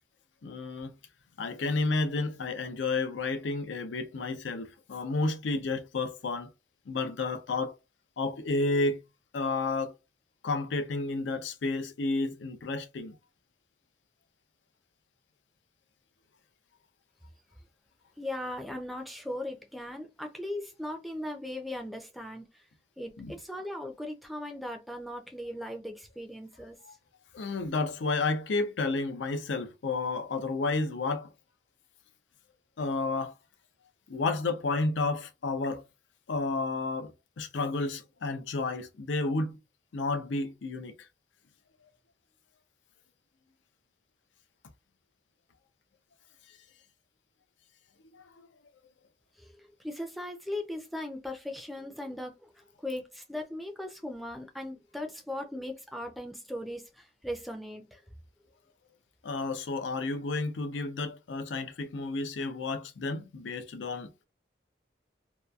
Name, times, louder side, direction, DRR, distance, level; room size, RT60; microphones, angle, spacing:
voice 1, 0.4-0.9 1.4-6.5 6.9-7.7 8.2-9.0 9.3-9.9 10.4-13.2 23.2-23.3 26.8-26.9 27.3-31.3 32.8-33.3 34.1-35.8 36.3-39.6 39.9-41.1 46.5-46.6 48.1-48.2 59.2-64.2, left 3 dB, 85° left, 0.5 m, -31 dB
voice 2, 18.2-22.4 23.0-26.8 49.4-49.5 49.8-52.3 52.8-58.0, left 1 dB, ahead, 0.4 m, -38 dB
2.8 x 2.3 x 2.3 m
head